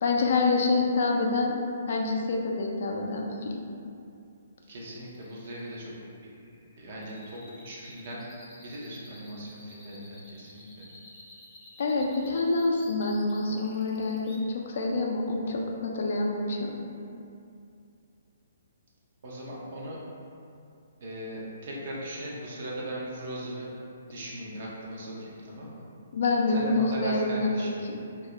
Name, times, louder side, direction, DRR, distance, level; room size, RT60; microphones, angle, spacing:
voice 1, 0.0-1.6 1.9-3.6 11.8-16.7 26.1-28.0, left 3 dB, 60° left, 0 dB, 0.3 m, -27 dB
sound 1, 4.6-14.4, left 1 dB, 5° left, 0.5 m, -52 dB
voice 2, 4.7-5.9 6.2-6.3 6.6-8.2 8.6-10.8 19.2-20.0 21.0-23.7 24.1-25.8 26.5-27.8, right 1 dB, 55° right, -4 dB, 0.6 m, -38 dB
2.3 x 2.0 x 2.9 m, 2.5 s
hypercardioid pair, 150°, 0 cm